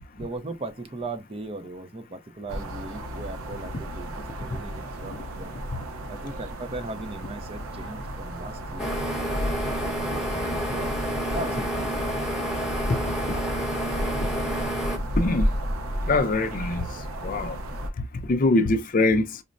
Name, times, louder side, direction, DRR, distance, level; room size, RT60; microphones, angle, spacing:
voice 1, 0.2-5.5 6.1-8.9 9.8-10.9 11.2-12.2, right 2 dB, 30° right, 0.5 m, -38 dB
sound 1, 2.5-17.9, equal, 85° right, 0.7 m, -33 dB
sound 2, 8.8-15.0, equal, ahead, 0.9 m, -29 dB
voice 2, 15.2-15.5 16.0-17.6 18.1-19.4, left 2 dB, 40° left, 0.5 m, -23 dB
5.0 x 2.1 x 2.5 m
head